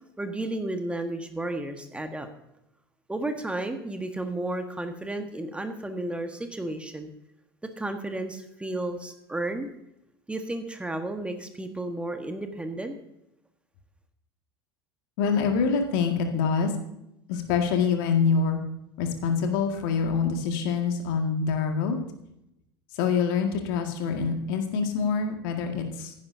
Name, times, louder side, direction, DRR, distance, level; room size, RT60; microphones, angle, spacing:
voice 1, 0.2-2.3 3.1-7.1 7.8-9.7 10.3-13.0, right 2 dB, 10° right, 6 dB, 1.4 m, -32 dB
voice 2, 15.2-16.7 17.3-18.6 19.0-22.0 23.0-26.1, left 5 dB, 60° left, 4 dB, 2.0 m, -25 dB
15.0 x 10.5 x 2.7 m, 0.83 s
figure-of-eight pair, 75°, 13 cm